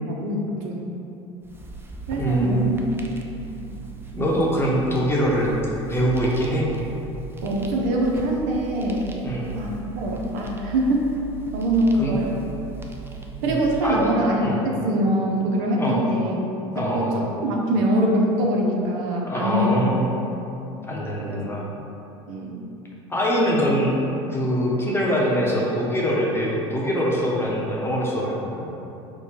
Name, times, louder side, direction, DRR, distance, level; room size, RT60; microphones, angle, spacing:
voice 1, 0.1-0.8 2.1-2.8 7.4-9.0 9.5-11.1 11.5-12.3 13.4-16.4 16.8-19.8 21.3-21.4 22.3-22.6, right 1 dB, 65° right, -1 dB, 0.7 m, -23 dB
sound 1, 1.4-13.9, right 5 dB, 15° right, 0.5 m, -38 dB
voice 2, 2.2-2.8 4.1-5.5 5.9-6.7 9.2-9.5 12.0-12.1 13.4-14.1 14.4-14.5 15.8-16.0 16.7-17.1 19.2-20.1 20.9-21.6 23.1-23.9 24.3-28.7, equal, 15° left, -4 dB, 0.9 m, -23 dB
4.3 x 2.3 x 4.3 m, 2.9 s
hypercardioid pair, 80°, 15 cm